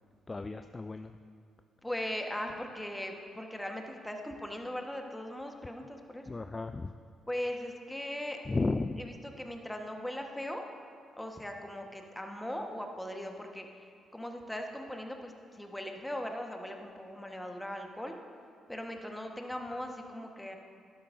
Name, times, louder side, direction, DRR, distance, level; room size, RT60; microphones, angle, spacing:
voice 1, 0.3-1.1 6.3-6.9 8.5-9.0, left 3 dB, 30° left, 8 dB, 0.4 m, -33 dB
voice 2, 1.8-6.4 7.3-8.4 9.0-10.7 11.2-18.2 18.7-20.6, left 1 dB, 10° left, 3 dB, 1.3 m, -39 dB
12.0 x 11.5 x 2.7 m, 2.2 s
hypercardioid pair, 45°, 0 cm